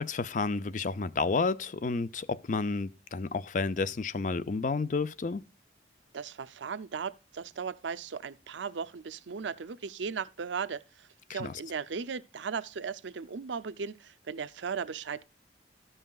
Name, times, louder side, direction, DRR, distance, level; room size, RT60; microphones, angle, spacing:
voice 1, 0.0-5.4 11.3-11.5, left 4 dB, 45° left, 0.4 m, -31 dB
voice 2, 6.1-15.2, right 6 dB, 90° right, 0.5 m, -37 dB
14.0 x 5.6 x 2.3 m
head